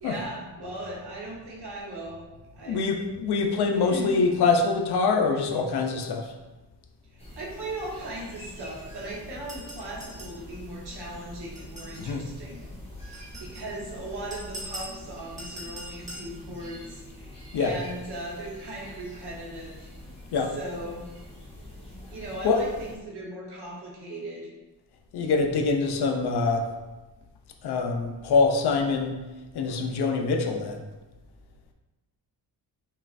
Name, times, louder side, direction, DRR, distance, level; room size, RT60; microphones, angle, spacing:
voice 1, 0.0-2.2 2.5-2.9 3.7-4.2 7.1-12.7 13.0-19.9 20.5-21.0 22.1-24.5, right 1 dB, 75° right, -3 dB, 1.1 m, -38 dB
voice 2, 2.7-6.3 12.0-12.2 17.5-17.8 20.3-20.5 22.4-22.6 25.1-26.7 27.6-29.2 29.5-30.8, left 4 dB, 70° left, 4 dB, 0.5 m, -24 dB
sound 1, 7.2-22.9, left 1 dB, 15° left, 0.6 m, -45 dB
sound 2, 9.5-10.4 11.5-12.1 13.1-13.7 14.3-14.9 15.4-16.3, right 1 dB, 20° right, 0.8 m, -41 dB
5.3 x 2.4 x 2.5 m, 1.1 s
wide cardioid pair, 160°, 40 cm